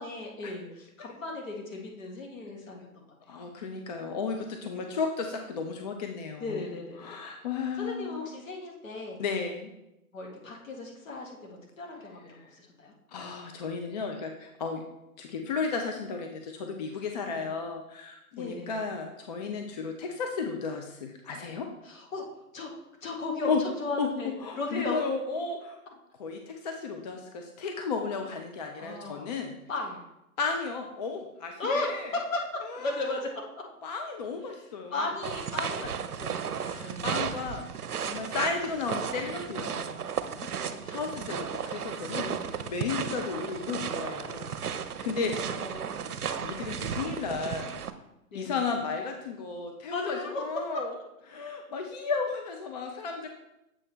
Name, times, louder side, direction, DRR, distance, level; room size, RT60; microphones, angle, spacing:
voice 1, 0.0-2.9 6.4-7.2 7.8-9.2 10.1-12.9 17.3-17.5 18.3-18.8 21.8-22.3 22.5-22.7 23.0-25.0 28.8-29.3 29.7-30.0 31.6-33.4 34.9-37.1 38.3-38.5 40.4-41.1 42.2-42.5 42.9-43.0 45.1-46.1 48.3-48.6 49.9-50.4 50.7-50.8, left 2 dB, 60° left, -1 dB, 2.1 m, -36 dB
voice 2, 3.3-6.7 7.0-8.1 9.2-9.7 12.4-12.5 13.1-14.8 15.2-21.7 23.5-23.6 24.0-24.1 24.4-25.8 26.2-29.6 30.4-32.1 32.6-33.1 33.8-35.1 36.6-37.7 38.0-40.0 40.8-45.3 46.3-47.8 48.3-50.9 51.3-53.3, left 5 dB, 30° left, 4 dB, 0.5 m, -34 dB
sound 1, 35.2-47.9, right 7 dB, 80° right, 0.7 m, -34 dB
7.5 x 3.3 x 5.9 m, 0.90 s
figure-of-eight pair, 125°, 44 cm